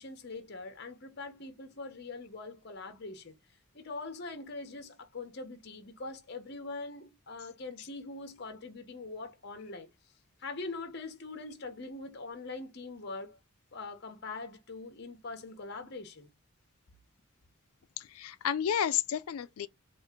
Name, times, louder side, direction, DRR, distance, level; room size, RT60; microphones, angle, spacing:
voice 1, 0.0-3.3 3.7-9.9 10.4-13.4 13.7-16.3, left 3 dB, 50° left, 0.8 m, -42 dB
voice 2, 18.0-19.7, left 9 dB, 80° left, 0.4 m, -31 dB
4.2 x 2.5 x 3.6 m
head